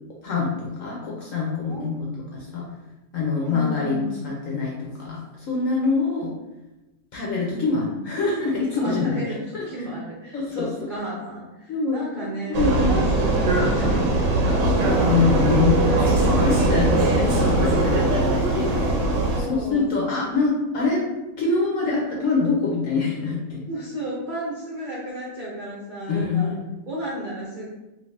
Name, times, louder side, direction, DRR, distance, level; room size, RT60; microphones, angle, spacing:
voice 1, 0.2-2.7 3.1-6.3 7.1-9.2 9.5-9.6 10.3-10.9 11.7-12.1 12.5-13.1 15.1-18.9 19.4-21.0 21.4-23.6 26.1-26.7, left 4 dB, 65° left, -3 dB, 0.8 m, -25 dB
voice 2, 1.7-2.2 3.4-4.1 7.5-8.0 8.8-15.3 16.3-16.4 19.3-20.0 23.7-26.5 26.9-27.7, right 1 dB, 65° right, -7 dB, 0.4 m, -34 dB
Vehicle, 12.5-19.4, right 2 dB, 85° right, 1.3 m, -20 dB
2.8 x 2.7 x 3.2 m, 1.0 s
omnidirectional pair, 1.9 m